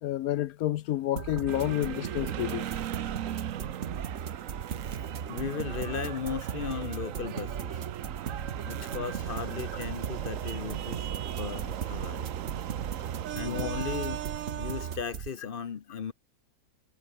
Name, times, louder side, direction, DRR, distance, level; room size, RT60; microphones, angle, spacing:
voice 1, 0.0-2.7 13.4-13.7, left 14 dB, 80° left, 1.1 m, -30 dB
sound 1, 1.2-15.3, right 7 dB, 50° right, 1.3 m, -38 dB
sound 2, 1.5-15.0, right 11 dB, 65° right, 1.1 m, -38 dB
voice 2, 5.3-7.9 8.6-11.1 11.4-12.3 13.3-14.2 14.6-16.1, left 6 dB, 45° left, 0.8 m, -36 dB
omnidirectional pair, 1.6 m